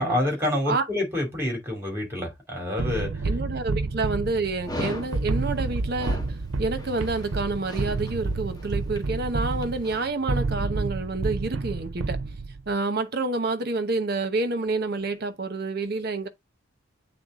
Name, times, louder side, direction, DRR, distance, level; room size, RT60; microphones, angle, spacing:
voice 1, 0.0-3.3, left 1 dB, 10° right, 2.6 m, -27 dB
sound 1, 2.8-12.7, right 3 dB, 70° right, 0.6 m, -29 dB
voice 2, 3.2-6.2 6.6-12.2 12.7-16.3, right 3 dB, 50° right, 0.9 m, -28 dB
Dog, 4.6-10.0, left 1 dB, 20° left, 1.4 m, -38 dB
7.9 x 3.6 x 3.6 m
head